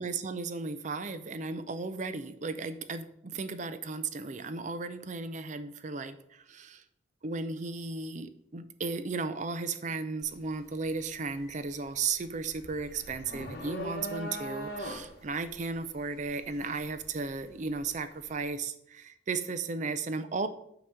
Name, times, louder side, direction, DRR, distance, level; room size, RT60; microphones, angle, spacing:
voice 1, 0.0-6.8 7.2-20.5, right 4 dB, 45° right, 11 dB, 0.5 m, -35 dB
sound 1, 10.2-10.5 10.8-17.9, equal, 60° left, 1.4 m, -41 dB
8.7 x 3.0 x 6.4 m, 0.71 s
head